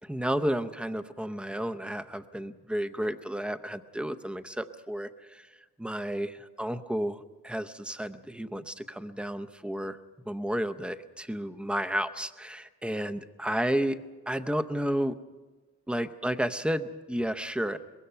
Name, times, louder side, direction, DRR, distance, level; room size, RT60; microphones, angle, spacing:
voice 1, 0.0-5.5 5.8-10.0 10.3-14.0 14.3-15.1 15.9-17.8, equal, 5° right, 10 dB, 0.7 m, -32 dB
23.5 x 21.5 x 5.6 m, 1.3 s
wide cardioid pair, 150°, 32 cm